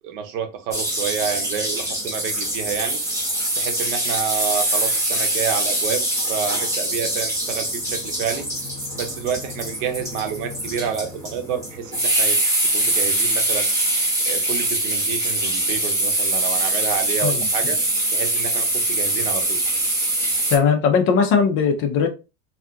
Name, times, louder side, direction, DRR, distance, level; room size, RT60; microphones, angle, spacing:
voice 1, 0.0-3.0 3.6-6.0 6.3-8.5 8.9-13.7 14.2-17.8 18.1-19.6, right 7 dB, 90° right, 0.9 m, -29 dB
sound 1, 0.7-20.6, right 1 dB, 10° right, 0.9 m, -23 dB
voice 2, 20.5-22.1, left 6 dB, 35° left, 0.4 m, -19 dB
2.7 x 2.4 x 3.4 m
cardioid pair, 170°, 37 cm